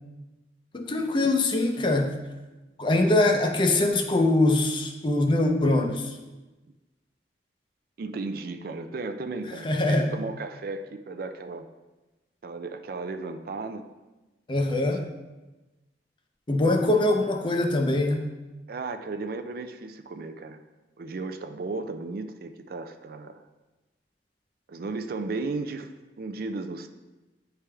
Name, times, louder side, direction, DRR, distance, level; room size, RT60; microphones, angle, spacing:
voice 1, 0.7-2.1 2.8-6.2 9.6-10.1 14.5-15.0 16.5-18.3, left 2 dB, 30° left, 3 dB, 0.6 m, -23 dB
voice 2, 8.0-11.7 12.4-13.8 18.7-20.6 21.0-23.4 24.7-25.9 26.2-26.9, right 3 dB, 55° right, 8 dB, 0.4 m, -35 dB
9.5 x 3.4 x 3.3 m, 1.1 s
head